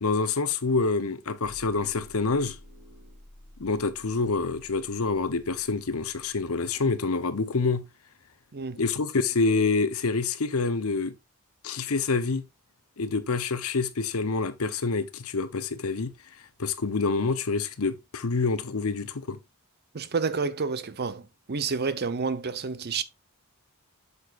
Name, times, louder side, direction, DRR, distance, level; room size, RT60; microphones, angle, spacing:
voice 1, 0.0-2.6 3.6-7.9 8.8-11.1 11.6-12.4 13.0-16.1 16.6-19.4, left 4 dB, 70° left, 0.8 m, -27 dB
sound 1, 1.4-6.9, equal, 5° right, 4.6 m, -52 dB
voice 2, 19.9-23.0, right 5 dB, 50° right, 0.7 m, -29 dB
8.1 x 6.8 x 2.5 m
head